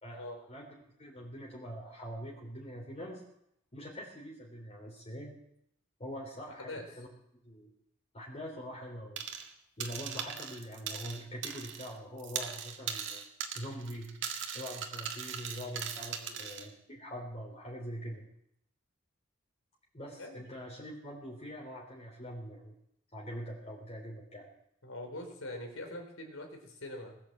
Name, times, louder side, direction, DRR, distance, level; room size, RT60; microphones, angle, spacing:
voice 1, 0.0-0.7 1.0-3.2 3.7-5.3 6.0-7.1 7.3-7.7 8.1-9.2 9.8-13.2 13.5-14.1 14.5-18.2 19.9-22.7 23.1-24.5, equal, 30° left, -2 dB, 3.2 m, -43 dB
sound 1, 9.2-9.5 9.8-11.9 12.2-16.7, right 8 dB, 65° right, 1.8 m, -39 dB
voice 2, 24.8-27.2, left 1 dB, 90° left, 3 dB, 3.8 m, -43 dB
19.5 x 9.1 x 7.9 m, 0.75 s
head